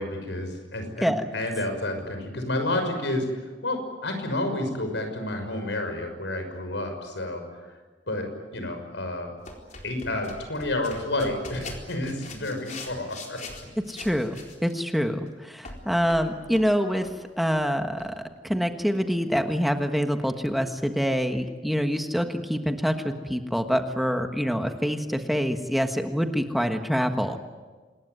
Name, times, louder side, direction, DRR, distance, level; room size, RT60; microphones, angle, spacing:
voice 1, 0.0-7.4 8.1-9.3 9.8-13.4, left 1 dB, 80° left, 6 dB, 6.2 m, -30 dB
sound 1, 9.4-14.9 15.6-16.8 17.0-17.2 17.5-17.6 18.0-18.1, left 3 dB, 45° left, 4.3 m, -42 dB
voice 2, 13.9-17.1 17.4-27.4, equal, ahead, 5 dB, 1.4 m, -26 dB
27.0 x 20.5 x 9.5 m, 1.3 s
head